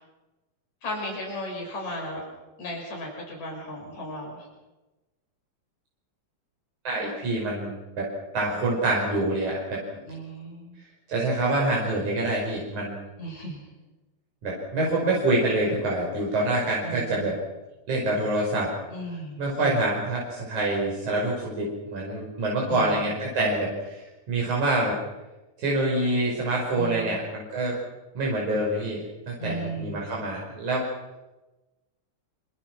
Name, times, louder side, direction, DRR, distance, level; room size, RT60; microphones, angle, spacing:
voice 1, 0.8-2.2 2.6-4.4 9.8-10.8 13.2-13.6 16.8-17.3 18.9-19.8 22.7-23.0 26.8-27.2 29.4-30.0, equal, 70° left, -1 dB, 7.3 m, -35 dB
voice 2, 6.8-8.0 8.3-9.8 11.1-13.0 14.4-17.4 17.9-18.7 19.4-25.0 25.6-27.8 28.1-29.0 29.3-30.9, right 2 dB, 90° right, -3 dB, 6.6 m, -26 dB
27.0 x 26.0 x 6.2 m, 1.1 s
omnidirectional pair, 3.3 m